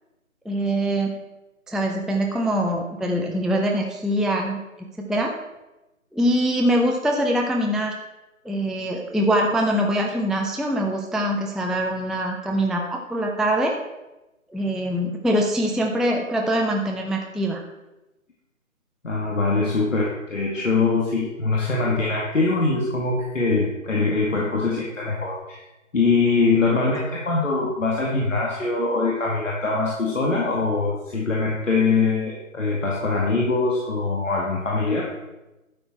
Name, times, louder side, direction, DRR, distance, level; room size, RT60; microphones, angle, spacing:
voice 1, 0.5-1.1 1.7-5.3 6.1-8.0 8.4-13.8 14.5-17.6, right 1 dB, ahead, 1 dB, 0.4 m, -23 dB
voice 2, 19.0-25.6 25.9-35.1, left 3 dB, 65° left, -4 dB, 2.1 m, -23 dB
11.5 x 6.6 x 4.3 m, 1.0 s
figure-of-eight pair, 165°, 41 cm